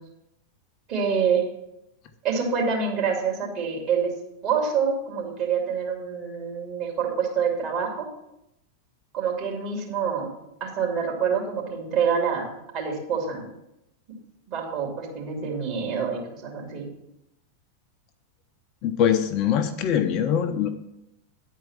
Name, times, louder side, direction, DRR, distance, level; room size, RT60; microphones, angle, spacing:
voice 1, 0.9-1.4 2.2-4.1 4.4-8.1 9.1-10.3 10.6-13.5 14.5-16.8, right 6 dB, 40° right, -1 dB, 2.9 m, -26 dB
voice 2, 18.8-20.7, left 9 dB, 40° left, 7 dB, 0.7 m, -23 dB
10.5 x 4.6 x 7.3 m, 0.84 s
figure-of-eight pair, 90°, 0 cm